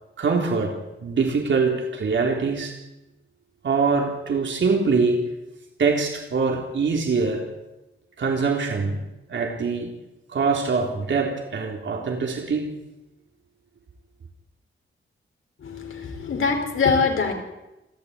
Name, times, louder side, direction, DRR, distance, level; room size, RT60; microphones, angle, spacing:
voice 1, 0.2-2.8 3.6-5.3 5.8-7.5 8.2-9.0 9.3-9.9 10.3-12.7, right 4 dB, 65° right, 2 dB, 3.7 m, -23 dB
voice 2, 15.6-17.3, left 5 dB, 80° left, 4 dB, 4.8 m, -23 dB
27.5 x 13.5 x 9.6 m, 0.98 s
wide cardioid pair, 150°, 21 cm